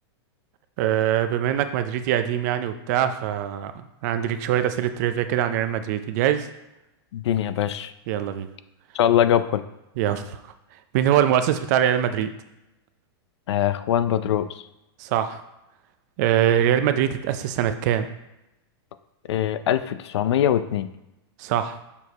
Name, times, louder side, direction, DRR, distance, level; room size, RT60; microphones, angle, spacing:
voice 1, 0.8-6.5 8.1-8.5 10.0-10.4 10.9-12.3 15.0-15.4 16.2-18.1 21.4-21.8, right 10 dB, 40° right, 10 dB, 0.5 m, -23 dB
voice 2, 7.1-7.9 8.9-9.6 13.5-14.6 19.3-20.9, left 10 dB, 80° left, 12 dB, 0.5 m, -22 dB
6.9 x 4.6 x 4.1 m, 0.92 s
supercardioid pair, 165°, 14 cm